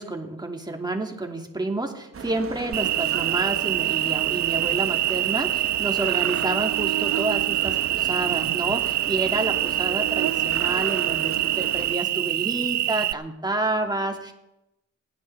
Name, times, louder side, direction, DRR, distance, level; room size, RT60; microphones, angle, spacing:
voice 1, 0.0-14.3, right 2 dB, 15° right, 2 dB, 2.7 m, -29 dB
sound 1, 2.1-12.0, right 6 dB, 45° right, 1.1 m, -37 dB
Cricket, 2.7-13.1, right 14 dB, 70° right, 0.5 m, -25 dB
29.5 x 10.0 x 3.6 m, 0.89 s
cardioid pair, 70°, 30 cm